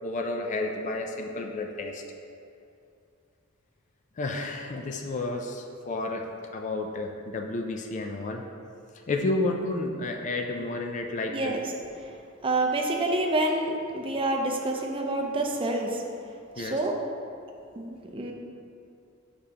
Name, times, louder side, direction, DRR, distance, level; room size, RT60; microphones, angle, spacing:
voice 1, 0.0-2.0 4.2-8.4 9.1-11.6 16.6-16.8, left 2 dB, 35° left, 4 dB, 0.3 m, -31 dB
voice 2, 11.3-11.7 12.4-16.0 16.6-16.9 17.8-18.3, right 2 dB, 25° right, 1 dB, 0.5 m, -28 dB
6.6 x 5.1 x 2.8 m, 2.5 s
head